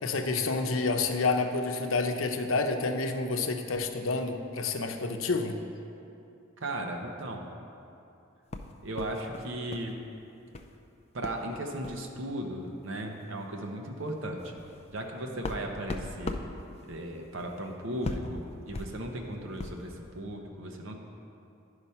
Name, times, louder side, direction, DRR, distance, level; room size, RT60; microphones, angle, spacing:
voice 1, 0.0-5.6, left 3 dB, 90° left, 5 dB, 0.7 m, -29 dB
voice 2, 6.6-7.5 8.8-10.0 11.1-14.6 14.9-16.4 16.9-21.0, right 1 dB, 70° right, 2 dB, 0.9 m, -36 dB
sound 1, 8.5-9.9 10.2-10.7 11.2-11.4 11.8-12.1 12.9-13.0 13.4-13.5 14.0-19.9, left 2 dB, 30° left, 0.4 m, -40 dB
10.5 x 4.9 x 5.6 m, 2.7 s
head